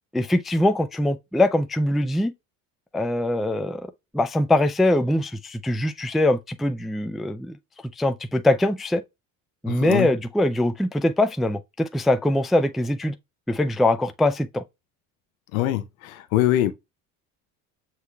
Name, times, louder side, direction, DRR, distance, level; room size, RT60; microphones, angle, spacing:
voice 1, 0.1-2.3 2.9-3.9 4.1-7.6 8.0-9.0 9.6-13.2 13.5-14.6, left 1 dB, ahead, 0.3 m, -22 dB
voice 2, 9.7-10.1 15.5-16.7, left 14 dB, 80° left, 0.8 m, -23 dB
6.5 x 3.1 x 2.3 m
hypercardioid pair, 70°, 41 cm